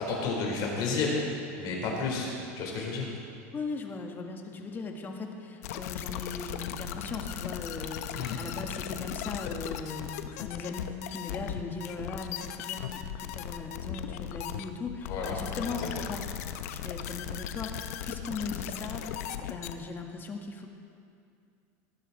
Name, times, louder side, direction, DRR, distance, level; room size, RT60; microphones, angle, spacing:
voice 1, 0.0-2.3 2.6-3.1 8.1-8.4 15.1-16.1, left 3 dB, 50° left, -1 dB, 4.4 m, -32 dB
voice 2, 3.5-16.2 16.7-19.1 19.4-20.7, left 4 dB, 25° left, 3 dB, 1.7 m, -38 dB
sound 1, 5.6-19.7, left 10 dB, 75° left, 0.8 m, -37 dB
19.0 x 12.5 x 4.3 m, 2.4 s
supercardioid pair, 120°, 8 cm